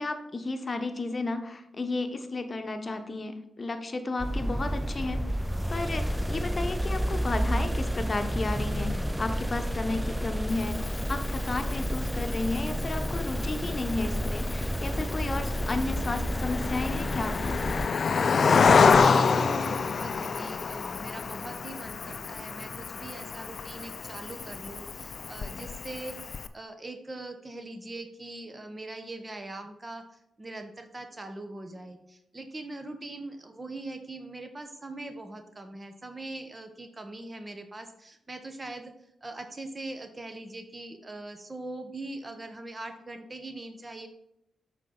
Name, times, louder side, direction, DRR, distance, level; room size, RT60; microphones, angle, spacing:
voice 1, 0.0-5.2 5.7-17.6, left 2 dB, 45° left, 8 dB, 1.0 m, -33 dB
sound 1, 4.2-17.9, equal, 5° right, 0.5 m, -30 dB
Cricket, 10.5-26.5, left 5 dB, 60° left, 0.4 m, -28 dB
voice 2, 18.4-26.2 26.5-38.9 39.2-44.1, right 2 dB, 30° right, 7 dB, 1.0 m, -41 dB
7.4 x 5.2 x 3.9 m, 0.81 s
supercardioid pair, 40°, 0 cm